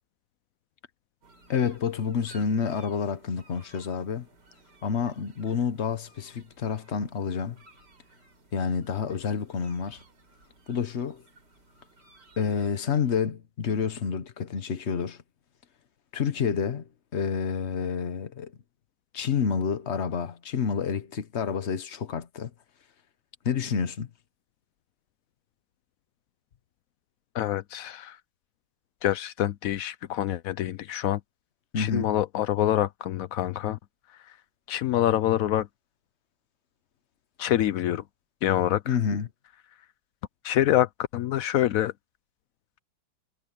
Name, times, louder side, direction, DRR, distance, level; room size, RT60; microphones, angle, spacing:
sound 1, 1.2-13.2, right 3 dB, 60° right, 4.5 m, -57 dB
voice 1, 1.5-4.3 4.8-7.6 8.5-10.0 10.7-11.2 12.4-15.2 16.1-18.5 19.1-22.5 23.4-24.1 31.7-32.1 38.9-39.3, left 6 dB, 40° left, 1.1 m, -29 dB
voice 2, 27.3-28.2 29.0-31.2 31.8-33.8 34.2-34.4 34.7-35.7 37.4-38.0 38.4-39.0 40.4-41.9, left 12 dB, 75° left, 0.7 m, -26 dB
omnidirectional pair, 2.1 m